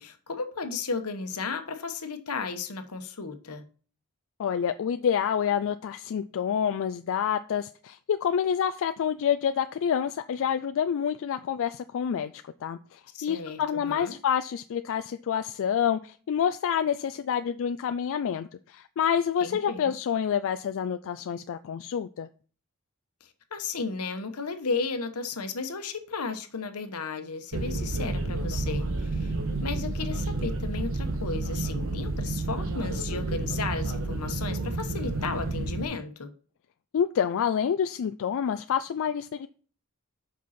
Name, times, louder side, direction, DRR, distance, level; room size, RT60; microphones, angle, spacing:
voice 1, 0.0-3.6 13.1-14.2 19.4-19.9 23.2-29.3 29.6-36.3, left 4 dB, 85° left, 1.1 m, -34 dB
voice 2, 4.4-12.3 12.6-22.3 36.9-39.5, left 8 dB, 60° left, 0.3 m, -28 dB
sound 1, 27.5-35.8, right 2 dB, 65° right, 1.2 m, -30 dB
7.6 x 5.4 x 4.2 m
head